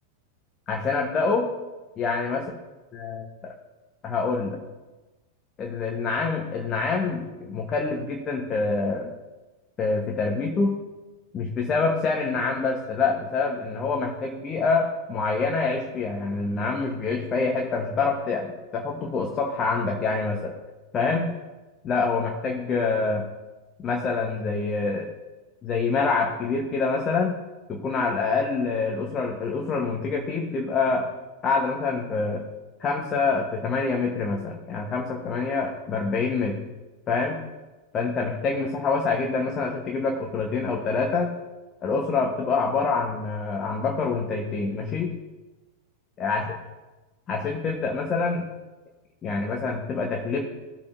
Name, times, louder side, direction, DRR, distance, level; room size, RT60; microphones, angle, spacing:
voice 1, 0.7-1.5 2.0-2.5 2.9-3.5 4.0-4.6 5.6-9.1 9.8-10.8 11.3-20.5 20.9-21.3 21.8-23.3 23.8-25.1 25.6-27.4 27.7-31.1 31.4-32.5 32.8-36.6 37.1-37.4 37.9-41.4 41.8-45.2 46.2-46.4 47.3-48.4 49.2-50.5, left 4 dB, 25° left, 1 dB, 1.3 m, -26 dB
16.5 x 6.8 x 2.7 m, 1.1 s
figure-of-eight pair, 90°, 0 cm